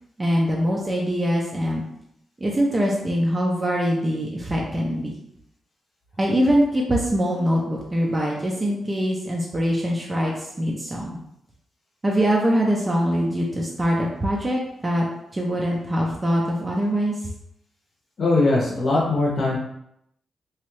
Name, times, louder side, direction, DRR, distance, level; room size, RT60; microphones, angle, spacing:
voice 1, 0.2-1.8 2.4-5.2 6.2-11.2 12.0-15.1 15.3-17.1, equal, 20° right, -2 dB, 0.4 m, -23 dB
voice 2, 18.2-19.6, left 2 dB, 55° left, -4 dB, 0.7 m, -20 dB
3.0 x 2.3 x 3.0 m, 0.77 s
cardioid pair, 120°, 0 cm